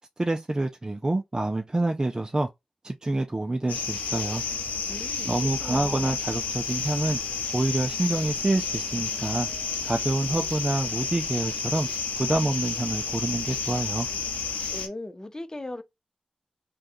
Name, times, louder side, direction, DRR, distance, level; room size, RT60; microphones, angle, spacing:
voice 1, 0.2-2.5 2.8-4.4 5.2-7.2 7.5-9.5 9.8-11.9 12.2-14.1, right 2 dB, 25° right, 0.5 m, -27 dB
sound 1, 3.7-14.9, left 5 dB, 90° left, 0.7 m, -31 dB
voice 2, 4.9-6.2 14.7-15.8, left 1 dB, 25° left, 0.7 m, -38 dB
3.5 x 2.3 x 2.6 m
cardioid pair, 40°, 3 cm